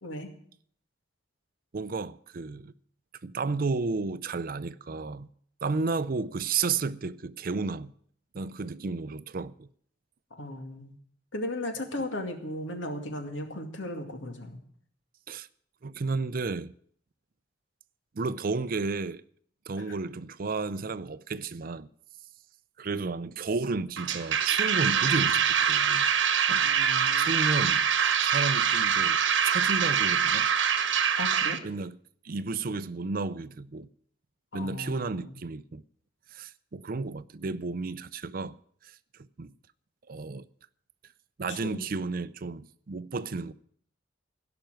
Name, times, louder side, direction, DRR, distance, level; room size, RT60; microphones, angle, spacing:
voice 1, 1.7-2.7 3.2-5.3 5.6-7.9 8.3-9.7 15.3-15.5 15.8-16.7 18.1-19.2 19.7-21.9 22.8-26.1 26.5-26.7 27.1-27.8 28.2-30.5 31.6-32.0 32.2-33.9 34.5-35.8 36.3-38.6 39.4-39.5 40.1-40.5 41.4-43.5, right 4 dB, 50° right, 0.5 m, -32 dB
voice 2, 10.3-10.9 11.3-14.6 19.9-20.0 26.6-27.4 31.2-31.6 34.5-35.4 41.5-41.8, left 1 dB, 80° left, 2.3 m, -36 dB
sound 1, 24.0-31.6, right 7 dB, 70° right, 1.1 m, -24 dB
16.5 x 5.9 x 9.0 m
head